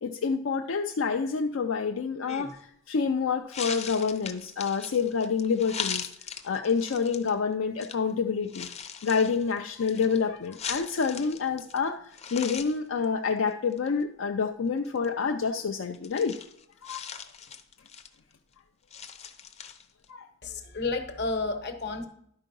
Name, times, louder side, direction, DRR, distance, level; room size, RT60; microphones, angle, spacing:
voice 1, 0.0-6.1 6.4-8.7 9.0-16.4 16.8-17.0 20.1-20.3, left 5 dB, 75° left, 4 dB, 0.5 m, -28 dB
sound 1, 2.3-2.6 3.5-7.3 7.8-8.0 8.4-11.8 12.1-12.8 13.0-13.1 13.5-13.9 14.8-15.1 15.9-18.3 18.9-20.0, left 7 dB, 30° left, 0.6 m, -39 dB
voice 2, 20.4-22.1, left 3 dB, 55° left, 8 dB, 1.0 m, -31 dB
11.5 x 4.5 x 5.4 m, 0.71 s
head